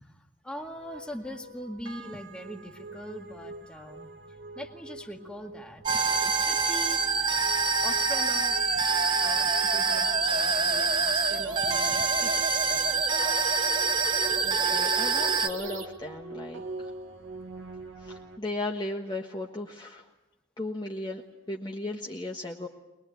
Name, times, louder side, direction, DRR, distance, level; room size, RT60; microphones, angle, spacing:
voice 1, 0.4-4.1 4.6-7.0 7.8-8.8 9.2-13.2, equal, 5° left, 2 dB, 1.9 m, -42 dB
sound 1, 0.6-18.4, right 2 dB, 80° right, 2.0 m, -44 dB
sound 2, 5.8-15.8, right 2 dB, 40° right, 2.2 m, -35 dB
sound 3, 5.9-15.5, right 5 dB, 25° right, 1.1 m, -26 dB
voice 2, 14.4-16.6 18.1-20.0 20.6-21.2 21.5-22.7, left 2 dB, 25° left, 0 dB, 1.4 m, -35 dB
22.5 x 21.5 x 9.3 m, 0.99 s
head